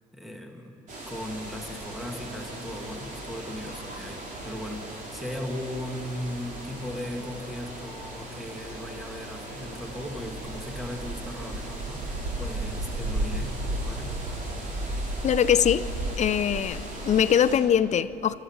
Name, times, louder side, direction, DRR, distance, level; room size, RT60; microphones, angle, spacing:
voice 1, 0.1-0.8 1.1-13.6 13.8-14.1, left 1 dB, ahead, 2 dB, 2.0 m, -37 dB
sound 1, 0.9-17.6, right 1 dB, 50° right, 4.2 m, -35 dB
voice 2, 15.2-15.8 16.2-18.3, left 9 dB, 45° left, 15 dB, 0.6 m, -22 dB
26.5 x 13.5 x 7.3 m, 3.0 s
cardioid pair, 110°, 17 cm